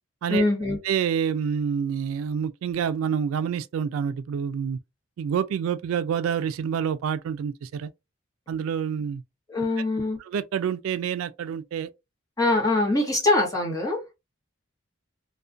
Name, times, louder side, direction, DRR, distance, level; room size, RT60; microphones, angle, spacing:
voice 1, 0.3-0.8 9.5-10.2 12.4-14.0, left 2 dB, 15° left, 0.9 m, -23 dB
voice 2, 0.8-4.8 5.2-7.9 8.5-9.2 10.3-11.9 12.7-12.8, right 7 dB, 90° right, 0.3 m, -27 dB
2.4 x 2.1 x 2.4 m
head